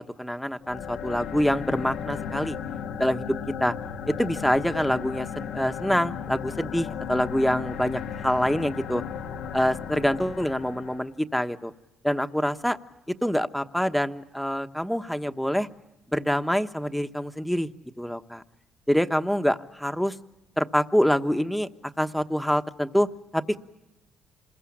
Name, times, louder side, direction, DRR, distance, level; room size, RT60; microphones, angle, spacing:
voice 1, 0.0-2.6 3.0-3.2 3.6-3.7 4.1-9.0 9.5-11.7 12.0-12.8 13.2-15.7 16.1-17.7 18.0-18.4 18.9-20.1 20.6-21.7 22.0-23.1 23.3-23.6, equal, ahead, 8 dB, 1.1 m, -25 dB
sound 1, 0.6-11.1, left 7 dB, 90° left, 1.3 m, -35 dB
27.0 x 21.0 x 8.7 m, 1.0 s
cardioid pair, 90°, 0 cm